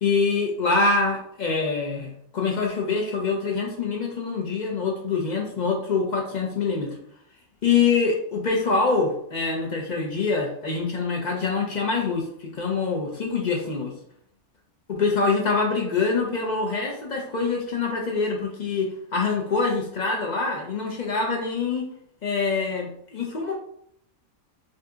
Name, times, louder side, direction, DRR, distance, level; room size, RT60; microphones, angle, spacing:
voice 1, 0.0-6.9 7.6-13.9 14.9-21.9 22.2-23.6, left 4 dB, 55° left, 0 dB, 0.5 m, -25 dB
2.7 x 2.6 x 3.5 m, 0.68 s
omnidirectional pair, 1.4 m